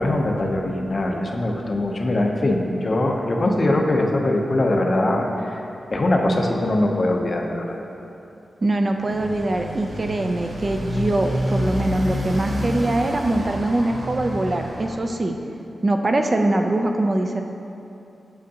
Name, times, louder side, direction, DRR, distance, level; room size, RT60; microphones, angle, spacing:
voice 1, 0.0-5.6 5.9-7.8, left 1 dB, 35° left, 2 dB, 0.5 m, -22 dB
voice 2, 8.6-15.4 15.8-17.4, right 2 dB, 30° right, 4 dB, 0.3 m, -22 dB
Motorcycle, 8.9-15.0, equal, 45° right, 0.9 m, -28 dB
7.5 x 6.5 x 2.8 m, 2.8 s
wide cardioid pair, 145°, 0 cm